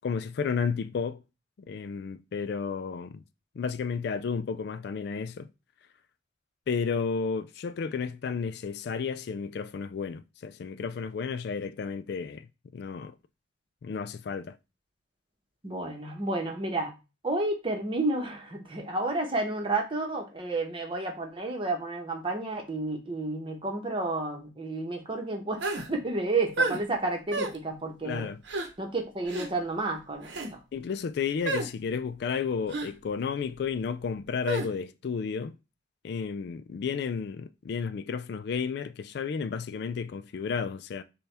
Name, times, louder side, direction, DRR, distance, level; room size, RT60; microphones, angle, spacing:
voice 1, 0.0-1.2 1.7-3.2 3.6-5.5 6.7-12.5 12.7-13.1 13.8-14.6 28.0-28.4 30.7-35.5 36.0-41.0, left 6 dB, 60° left, 0.3 m, -32 dB
voice 2, 15.6-16.9 17.2-25.6 25.9-28.3 28.8-30.6, right 2 dB, 30° right, 1.0 m, -31 dB
sound 1, 25.6-25.9 26.6-26.8 27.3-27.6 28.5-28.7 29.3-29.5 30.2-30.5 31.5-31.7 32.7-32.9 34.5-34.7, right 2 dB, 70° right, 0.8 m, -30 dB
6.7 x 2.3 x 3.4 m
head